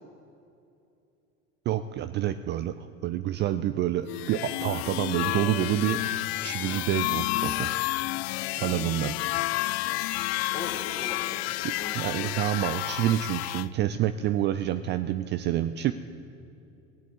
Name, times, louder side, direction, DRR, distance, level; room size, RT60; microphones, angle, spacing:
voice 1, 1.7-7.7 8.6-9.2 9.5-9.7 11.9-15.9, right 12 dB, 25° right, 11 dB, 0.4 m, -28 dB
sound 1, 4.1-13.7, left 19 dB, 50° left, 0.5 m, -30 dB
voice 2, 8.6-9.1 10.0-12.3, left 4 dB, 25° left, -4 dB, 2.1 m, -41 dB
17.0 x 8.3 x 8.1 m, 2.7 s
figure-of-eight pair, 75°, 42 cm